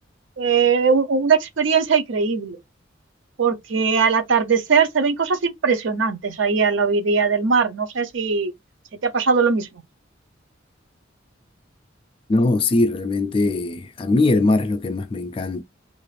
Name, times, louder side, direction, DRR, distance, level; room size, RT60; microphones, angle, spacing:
voice 1, 0.4-2.6 3.4-8.5 9.0-9.7, right 5 dB, 70° right, 0.6 m, -20 dB
voice 2, 12.3-15.6, left 2 dB, 25° left, 0.3 m, -21 dB
2.4 x 2.4 x 3.2 m
head